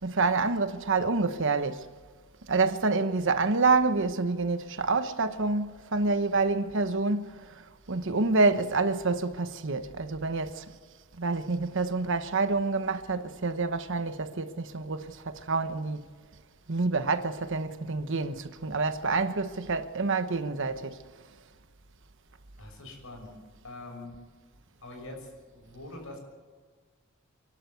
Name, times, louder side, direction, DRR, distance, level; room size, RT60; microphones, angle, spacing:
voice 1, 0.0-1.9 2.5-10.6 11.2-16.0 16.7-21.0, right 3 dB, 65° right, 1.1 m, -27 dB
voice 2, 22.6-23.3 23.6-24.2 24.8-26.2, left 2 dB, 75° left, 6.6 m, -44 dB
27.5 x 11.5 x 8.2 m
head